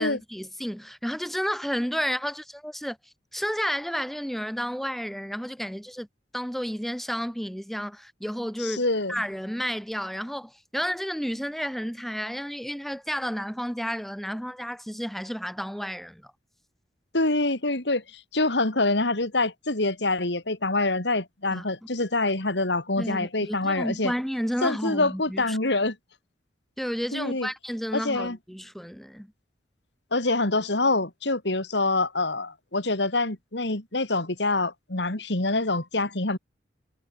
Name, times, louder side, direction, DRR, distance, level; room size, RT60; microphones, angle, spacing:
voice 1, 0.0-3.0 3.3-6.1 6.3-8.8 9.1-16.3 21.5-21.6 23.0-25.6 26.8-29.3, equal, ahead, 3.2 m, -31 dB
voice 2, 8.6-9.1 17.1-18.0 18.3-24.1 24.6-26.0 27.1-27.5 27.9-28.4 30.1-36.4, left 2 dB, 70° left, 3.2 m, -25 dB
head